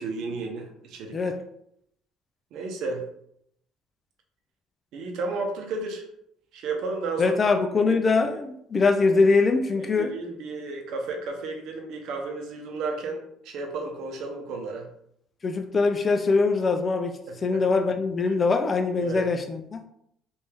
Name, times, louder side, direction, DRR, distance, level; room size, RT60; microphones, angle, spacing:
voice 1, 0.0-1.3 2.5-3.0 4.9-6.1 6.5-7.4 7.9-8.0 9.8-14.9 17.3-17.6 18.3-18.4 19.0-19.2, right 3 dB, 70° right, 0.8 m, -33 dB
voice 2, 7.2-10.1 15.4-19.8, left 4 dB, 30° left, 0.4 m, -23 dB
3.4 x 2.6 x 3.3 m
supercardioid pair, 90°, 0 cm